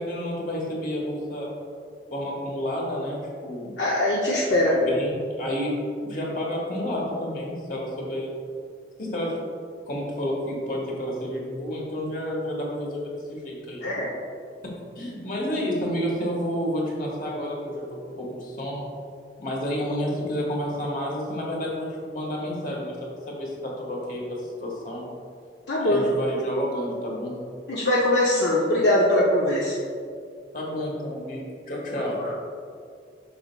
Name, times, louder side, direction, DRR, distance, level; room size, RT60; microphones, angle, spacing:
voice 1, 0.0-1.5 2.1-3.7 4.5-5.7 6.0-8.3 9.0-9.4 9.9-13.8 14.9-17.8 18.2-18.8 19.4-23.0 23.3-25.1 25.8-27.3 30.5-32.2, equal, 50° left, -2 dB, 1.4 m, -30 dB
voice 2, 3.8-4.8 13.8-14.1 25.7-26.1 27.7-29.8 32.2-32.3, left 1 dB, 70° left, -4 dB, 0.7 m, -21 dB
7.6 x 5.8 x 2.2 m, 2.3 s
head